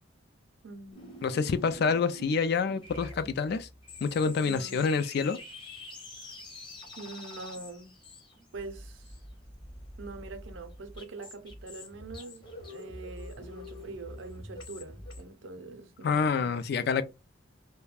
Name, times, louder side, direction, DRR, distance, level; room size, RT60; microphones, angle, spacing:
voice 1, 0.6-1.2 4.4-5.1 7.0-8.0 8.5-9.1 10.0-16.5, right 3 dB, 75° right, 0.6 m, -44 dB
sound 1, 0.9-15.2, left 2 dB, 25° left, 0.8 m, -46 dB
voice 2, 1.2-3.7 4.0-5.4 16.0-17.0, left 5 dB, 55° left, 0.3 m, -27 dB
2.3 x 2.1 x 3.3 m
head